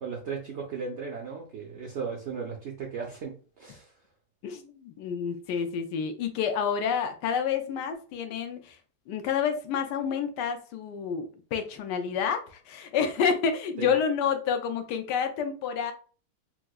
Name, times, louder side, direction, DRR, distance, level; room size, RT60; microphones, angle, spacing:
voice 1, 0.0-3.9 13.8-14.0, right 5 dB, 70° right, -1 dB, 0.6 m, -36 dB
voice 2, 4.4-8.8 9.1-15.9, left 7 dB, 85° left, 6 dB, 1.2 m, -29 dB
4.5 x 2.0 x 2.2 m, 0.39 s
omnidirectional pair, 1.8 m